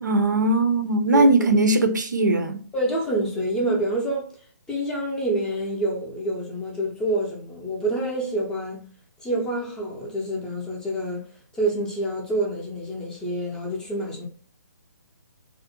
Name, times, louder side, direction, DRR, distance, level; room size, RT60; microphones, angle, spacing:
voice 1, 0.0-2.6, right 2 dB, 80° right, 0.5 m, -20 dB
voice 2, 1.1-1.6 2.7-4.3 4.7-8.8 9.2-11.2 11.6-14.2, right 1 dB, 5° left, 0.5 m, -27 dB
2.4 x 2.1 x 2.7 m
figure-of-eight pair, 140°, 10 cm